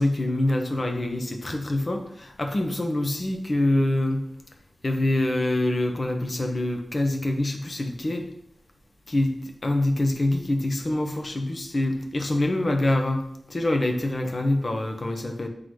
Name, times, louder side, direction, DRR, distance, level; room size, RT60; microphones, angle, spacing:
voice 1, 0.0-4.2 4.8-8.3 9.1-15.5, left 1 dB, 40° left, 4 dB, 0.8 m, -25 dB
7.7 x 3.9 x 3.2 m, 0.75 s
wide cardioid pair, 115°, 0 cm